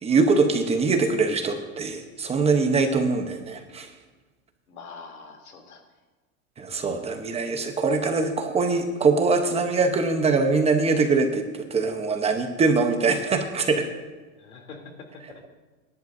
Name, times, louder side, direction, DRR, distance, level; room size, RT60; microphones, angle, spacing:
voice 1, 0.0-3.9 6.6-11.4 11.7-13.9, right 4 dB, 15° right, 5 dB, 1.0 m, -23 dB
voice 2, 4.7-5.8 14.4-15.5, left 4 dB, 85° left, 2 dB, 3.1 m, -44 dB
22.5 x 11.0 x 2.7 m, 1.3 s
hypercardioid pair, 135°, 42 cm